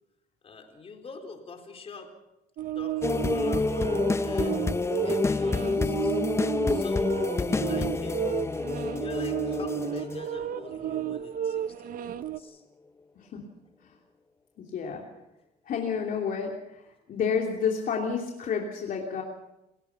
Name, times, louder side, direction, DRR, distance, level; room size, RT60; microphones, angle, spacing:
voice 1, 0.4-2.1 2.7-4.7 5.0-6.2 6.7-8.6 9.0-12.6, left 4 dB, 35° left, 4 dB, 4.1 m, -44 dB
sound 1, 2.6-12.4, right 10 dB, 55° right, 0.8 m, -33 dB
sound 2, 3.0-11.0 11.4-11.6, left 3 dB, 15° left, 0.6 m, -28 dB
voice 2, 14.6-15.0 15.7-19.2, left 6 dB, 55° left, 0 dB, 2.9 m, -30 dB
28.0 x 16.0 x 5.9 m, 0.94 s
cardioid pair, 110°, 17 cm